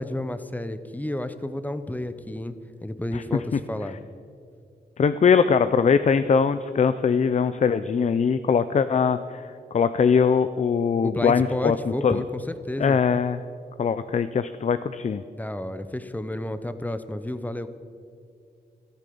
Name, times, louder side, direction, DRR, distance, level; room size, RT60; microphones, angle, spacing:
voice 1, 0.0-2.5 2.8-4.0 11.0-13.0 15.4-17.7, left 1 dB, 10° left, 11 dB, 0.9 m, -31 dB
voice 2, 5.0-11.8 12.0-12.2 12.8-13.4 13.8-15.2, left 6 dB, 45° left, 12 dB, 0.5 m, -21 dB
13.5 x 13.0 x 7.0 m, 2.3 s
wide cardioid pair, 95°, 17 cm